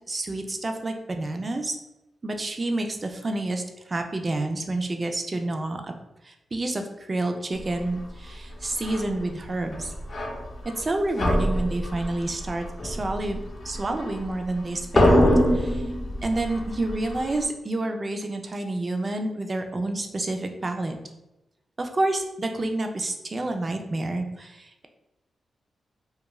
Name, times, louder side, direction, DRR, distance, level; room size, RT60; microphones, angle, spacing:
voice 1, 0.1-1.8 2.2-3.6 3.9-5.9 6.2-9.9 10.8-13.4 13.6-15.3 15.5-15.9 16.2-21.0 21.8-24.9, right 2 dB, 40° right, 5 dB, 0.4 m, -29 dB
sound 1, 8.7-9.1 9.7-10.8 11.2-14.5 14.8-17.5, left 1 dB, 55° left, 0.6 m, -24 dB
2.3 x 2.2 x 3.0 m, 0.95 s
cardioid pair, 70°, 0 cm